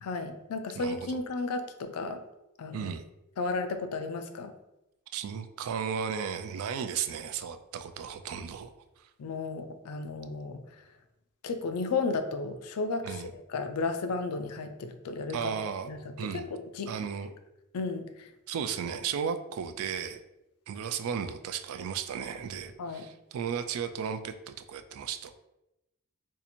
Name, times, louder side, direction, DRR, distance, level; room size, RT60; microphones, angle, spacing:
voice 1, 0.0-2.2 2.6-2.9 3.4-4.5 9.2-10.6 11.4-13.1 13.5-15.4 15.9-16.9 17.7-18.3 22.8-23.1, left 3 dB, 85° left, 8 dB, 0.4 m, -33 dB
voice 2, 0.7-1.2 2.7-3.0 5.1-9.1 13.0-13.3 15.3-15.9 16.2-16.5 16.9-17.3 18.5-20.2 20.7-25.3, right 7 dB, 70° right, 9 dB, 0.3 m, -35 dB
2.7 x 2.5 x 4.2 m, 0.93 s
head